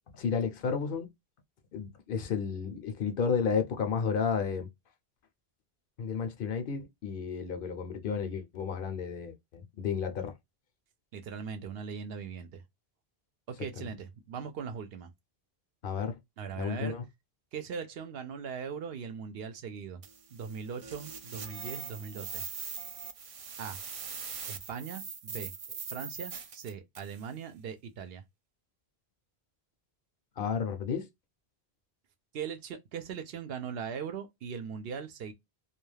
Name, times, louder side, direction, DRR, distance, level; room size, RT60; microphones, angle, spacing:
voice 1, 0.1-1.1 1.7-4.7 6.0-10.3 15.8-16.2 16.6-17.0 30.4-31.1, left 6 dB, 65° left, 0.7 m, -32 dB
voice 2, 11.1-12.6 13.5-15.1 16.4-17.0 17.5-20.0 20.3-22.4 23.6-23.8 24.5-25.5 25.9-28.2 32.3-35.3, right 6 dB, 70° right, 0.8 m, -40 dB
sound 1, 20.0-27.2, right 6 dB, 55° right, 0.4 m, -42 dB
2.3 x 2.2 x 3.1 m
omnidirectional pair, 1.1 m